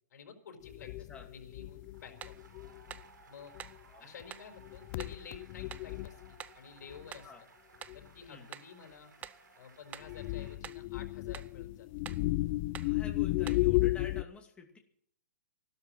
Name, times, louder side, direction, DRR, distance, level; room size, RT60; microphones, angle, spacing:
voice 1, 0.1-2.3 3.3-3.5 4.0-7.3 7.9-9.1 9.5-11.9, left 6 dB, 65° left, 4 dB, 5.0 m, -51 dB
sound 1, 0.6-3.0 3.6-3.7 4.2-4.3 4.6-6.3 6.9-7.0 7.9-8.0 10.0-14.2, left 19 dB, 35° left, 0.6 m, -33 dB
sound 2, 1.7-10.6, right 5 dB, 85° right, 5.9 m, -60 dB
sound 3, 2.2-2.5 2.9-3.1 3.6-3.8 4.3-4.5 5.0-5.2 5.7-5.9 6.4-6.6 7.1-7.3 7.8-8.0 8.5-8.8 9.2-9.5 9.9-10.2 10.6-10.9 11.3-11.6 12.1-12.3 12.7-13.0 13.5-13.7, right 9 dB, 15° right, 0.5 m, -47 dB
voice 2, 12.8-14.8, left 5 dB, 10° left, 2 dB, 2.5 m, -49 dB
15.0 x 12.5 x 6.3 m, 0.63 s
hypercardioid pair, 150°, 10 cm